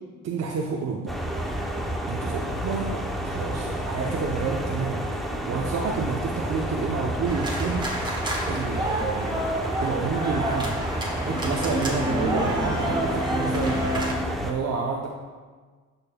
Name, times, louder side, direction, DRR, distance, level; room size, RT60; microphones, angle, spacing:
voice 1, 0.2-1.2 2.1-5.1 5.5-7.9 8.5-10.8 11.2-13.9 14.4-15.1, right 5 dB, 55° right, 0 dB, 0.7 m, -29 dB
sound 1, 1.1-14.5, equal, ahead, 0.7 m, -30 dB
sound 2, 7.3-14.1, right 1 dB, 15° right, 1.3 m, -29 dB
10.5 x 5.4 x 2.2 m, 1.5 s
cardioid pair, 90°, 30 cm